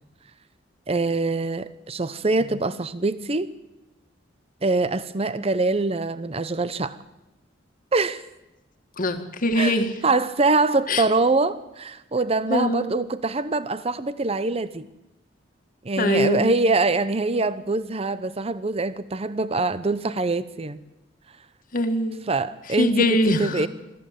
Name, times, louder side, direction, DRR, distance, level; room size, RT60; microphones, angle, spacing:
voice 1, 0.9-3.5 4.6-7.0 7.9-8.2 9.6-9.7 10.0-14.9 15.8-20.8 22.3-23.7, right 3 dB, 30° right, 15 dB, 0.7 m, -24 dB
voice 2, 9.0-9.9 10.9-11.0 12.5-13.0 16.0-16.5 21.7-22.2 22.7-23.7, left 1 dB, 45° left, 6 dB, 2.0 m, -23 dB
21.5 x 14.0 x 9.2 m, 0.97 s
head